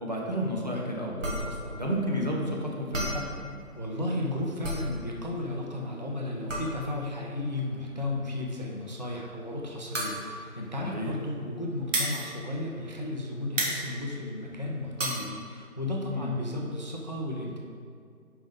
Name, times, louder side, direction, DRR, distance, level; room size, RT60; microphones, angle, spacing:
voice 1, 0.0-3.3 10.8-11.1 16.1-16.4, equal, 30° right, -3 dB, 0.7 m, -32 dB
sound 1, 1.2-13.2 13.5-15.3, right 1 dB, 60° right, 1.7 m, -34 dB
voice 2, 3.8-17.6, left 2 dB, 30° left, -1 dB, 0.5 m, -34 dB
5.6 x 5.2 x 5.0 m, 2.3 s
figure-of-eight pair, 165°, 43 cm